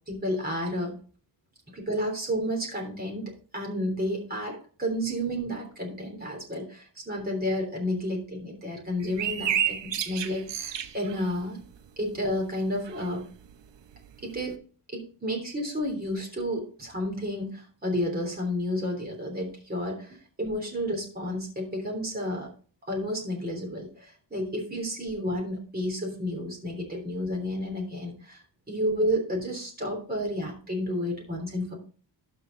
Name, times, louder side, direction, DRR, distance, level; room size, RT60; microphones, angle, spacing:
voice 1, 0.1-0.9 1.7-11.6 12.0-13.3 14.2-14.6 14.9-22.5 22.9-31.7, equal, 20° right, 0 dB, 3.2 m, -31 dB
sound 1, 9.0-12.3 12.6-14.5, right 9 dB, 70° right, 1.0 m, -32 dB
12.5 x 5.1 x 3.9 m, 0.39 s
wide cardioid pair, 120°, 45 cm